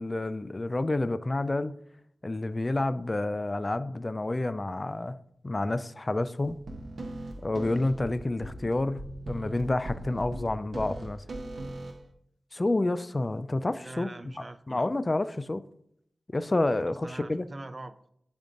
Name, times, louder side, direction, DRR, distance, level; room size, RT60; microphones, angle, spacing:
voice 1, 0.0-1.8 2.2-5.1 5.4-6.6 7.4-11.2 12.5-14.1 14.7-15.6 16.3-17.5, left 2 dB, 30° left, 0.3 m, -29 dB
sound 1, 6.4-12.1, right 1 dB, 85° right, 0.8 m, -39 dB
voice 2, 13.8-14.9 16.9-18.1, right 2 dB, 35° right, 0.5 m, -43 dB
9.2 x 5.2 x 2.5 m
wide cardioid pair, 80°, 0 cm